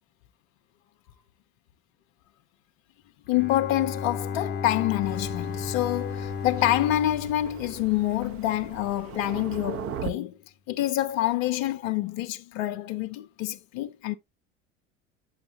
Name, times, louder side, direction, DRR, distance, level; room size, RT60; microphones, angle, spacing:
voice 1, 3.3-10.4 10.7-14.1, left 14 dB, 55° left, 0.7 m, -27 dB
Bowed string instrument, 3.3-8.5, left 6 dB, 30° left, 1.0 m, -34 dB
Thunder, 5.0-10.1, right 9 dB, 35° right, 1.0 m, -40 dB
9.4 x 6.5 x 2.8 m
figure-of-eight pair, 70°, 38 cm